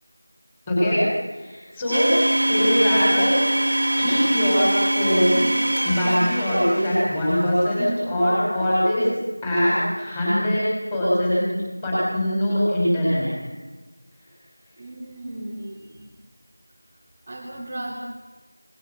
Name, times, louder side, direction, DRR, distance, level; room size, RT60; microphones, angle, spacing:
voice 1, 0.7-2.1 2.5-3.4 4.0-5.5 5.8-9.2 9.4-13.3, equal, 10° left, -9 dB, 6.1 m, -22 dB
Domestic sounds home sounds, 1.9-7.4, right 1 dB, 60° right, 2.2 m, -23 dB
voice 2, 14.8-16.1 17.3-17.9, right 1 dB, 15° right, -7 dB, 2.5 m, -35 dB
27.0 x 21.0 x 6.2 m, 1.2 s
figure-of-eight pair, 180°, 0 cm